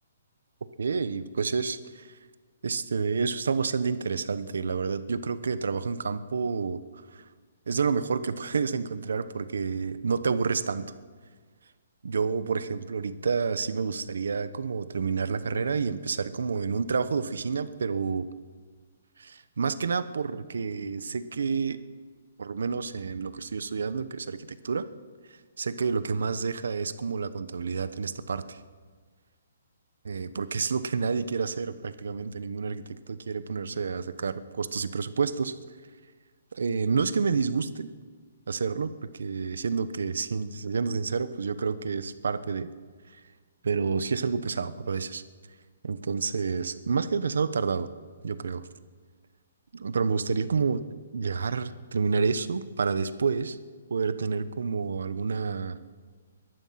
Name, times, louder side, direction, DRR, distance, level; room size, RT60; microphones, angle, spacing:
voice 1, 0.8-2.1 2.6-6.8 7.1-7.2 7.7-10.9 12.0-18.3 19.2-21.8 22.4-24.4 24.6-24.8 25.3-28.6 30.0-35.5 36.5-37.9 38.5-42.7 43.6-45.2 45.8-47.9 48.2-48.7 49.7-50.8 51.1-53.6 53.9-55.8, right 5 dB, 80° right, 13 dB, 0.9 m, -29 dB
21.5 x 11.5 x 5.8 m, 1.5 s
hypercardioid pair, 175°, 0 cm